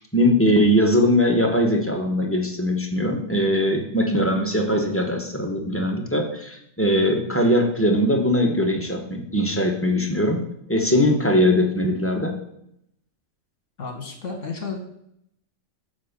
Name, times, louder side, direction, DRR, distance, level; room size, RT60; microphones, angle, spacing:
voice 1, 0.0-10.4 10.7-12.4, equal, 10° left, 1 dB, 1.0 m, -21 dB
voice 2, 13.8-14.8, left 4 dB, 70° left, 3 dB, 1.9 m, -32 dB
7.3 x 4.0 x 6.6 m, 0.74 s
omnidirectional pair, 1.4 m